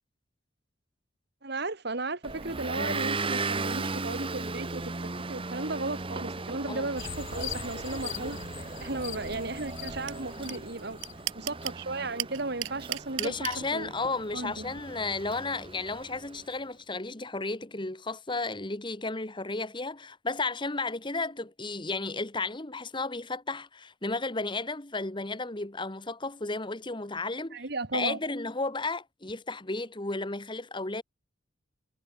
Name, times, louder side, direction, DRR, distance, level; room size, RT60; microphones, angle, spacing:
voice 1, 1.4-4.9 5.3-8.4 8.8-11.0 11.4-13.9 14.3-14.8 27.5-28.2, right 2 dB, 55° right, 2.0 m, -35 dB
Motor vehicle (road) / Engine, 2.2-16.5, right 3 dB, 25° right, 1.2 m, -37 dB
sound 1, 7.0-11.7, left 8 dB, 75° left, 0.9 m, -42 dB
sound 2, 10.1-10.2 10.5-10.6 10.8-11.8 12.2-13.6, right 15 dB, 80° right, 0.6 m, -32 dB
voice 2, 13.2-27.6 27.9-31.0, left 3 dB, 25° left, 1.5 m, -33 dB
head